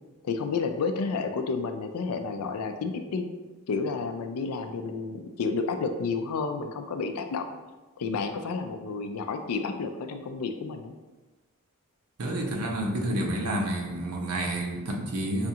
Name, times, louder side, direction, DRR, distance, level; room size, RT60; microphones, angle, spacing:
voice 1, 0.2-3.3 3.7-7.5 8.0-10.9, left 4 dB, 75° left, 7 dB, 0.4 m, -31 dB
voice 2, 12.2-15.5, right 1 dB, 75° right, 0 dB, 0.7 m, -29 dB
4.9 x 2.4 x 2.8 m, 1.2 s
head